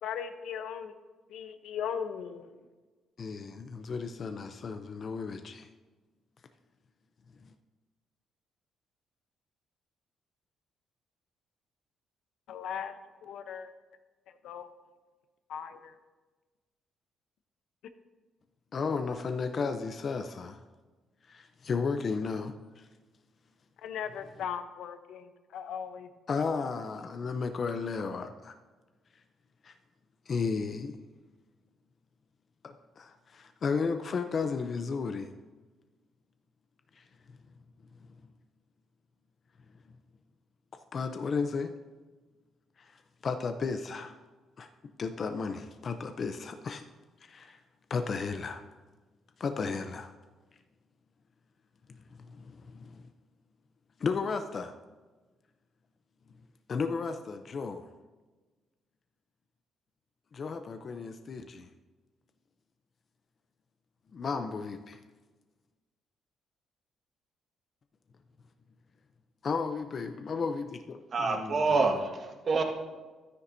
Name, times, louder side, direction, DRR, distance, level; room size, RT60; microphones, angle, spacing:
voice 1, 0.0-0.9 1.3-2.5 12.5-12.9 13.2-13.7 14.3-14.7 15.5-15.9 23.8-26.1, left 8 dB, 80° left, 9 dB, 0.7 m, -38 dB
voice 2, 3.2-5.7 7.4-7.5 18.7-20.6 21.3-22.9 26.3-28.6 29.6-29.7 30.3-31.0 32.6-35.3 36.9-37.0 40.7-41.7 42.8-44.2 44.6-44.7 45.0-46.8 47.2-47.6 47.9-48.6 49.4-50.1 51.9-53.1 54.0-54.7 56.7-57.9 60.3-61.7 64.1-65.0 69.4-72.0, left 5 dB, 50° left, 8 dB, 0.6 m, -34 dB
voice 3, 71.1-72.6, right 3 dB, 50° right, 2 dB, 1.6 m, -27 dB
13.0 x 9.8 x 2.7 m, 1.3 s
cardioid pair, 90°, 0 cm